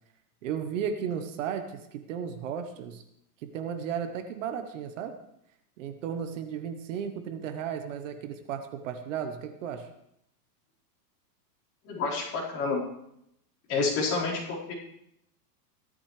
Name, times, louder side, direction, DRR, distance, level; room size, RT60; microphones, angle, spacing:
voice 1, 0.4-3.0 3.4-5.2 5.8-9.9, right 8 dB, 50° right, 8 dB, 1.2 m, -34 dB
voice 2, 11.8-12.8 13.7-14.7, left 4 dB, 30° left, -7 dB, 4.8 m, -29 dB
16.5 x 12.5 x 3.3 m, 0.77 s
supercardioid pair, 165°, 48 cm